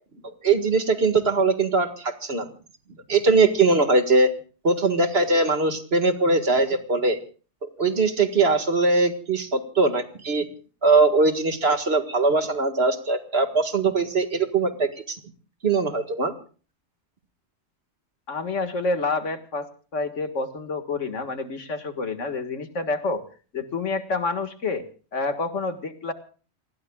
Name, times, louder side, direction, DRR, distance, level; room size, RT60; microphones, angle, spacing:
voice 1, 0.4-2.5 3.1-4.3 4.6-7.2 7.6-10.5 10.8-15.2 15.6-16.3, right 3 dB, 60° right, 7 dB, 2.1 m, -21 dB
voice 2, 18.3-23.2 23.5-24.9 25.1-26.1, left 3 dB, 90° left, 8 dB, 2.2 m, -28 dB
29.5 x 20.0 x 2.4 m, 0.39 s
omnidirectional pair, 1.2 m